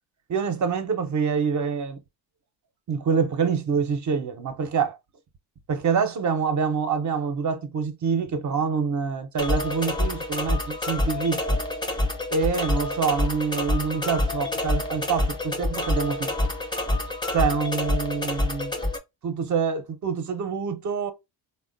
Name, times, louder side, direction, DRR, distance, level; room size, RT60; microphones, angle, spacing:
voice 1, 0.3-2.0 2.9-5.0 5.7-11.6 12.3-16.5 17.3-18.7 19.2-21.1, right 6 dB, 40° right, 0.6 m, -26 dB
sound 1, 9.4-19.0, left 1 dB, 10° left, 0.5 m, -27 dB
3.5 x 2.1 x 2.4 m
cardioid pair, 120°, 46 cm